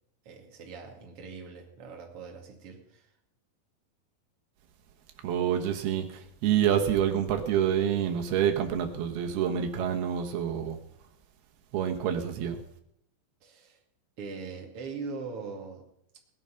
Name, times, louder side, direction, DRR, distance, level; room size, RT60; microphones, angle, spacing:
voice 1, 0.2-3.1 13.4-13.8 14.2-15.9, right 4 dB, 40° right, 1 dB, 2.9 m, -41 dB
voice 2, 5.2-10.8 11.7-12.6, right 9 dB, 80° right, 4 dB, 3.2 m, -27 dB
18.5 x 11.0 x 5.7 m, 0.73 s
omnidirectional pair, 4.5 m